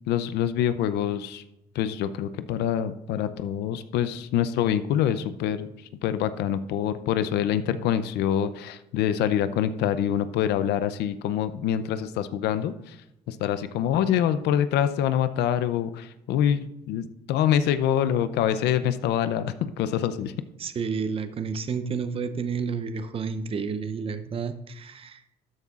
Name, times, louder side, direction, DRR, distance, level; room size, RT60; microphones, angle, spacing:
voice 1, 0.1-1.4 1.7-20.3, left 10 dB, 80° left, 12 dB, 0.6 m, -25 dB
voice 2, 20.6-25.2, right 5 dB, 35° right, 10 dB, 0.7 m, -30 dB
13.0 x 9.4 x 2.5 m, 0.87 s
cardioid pair, 110°, 17 cm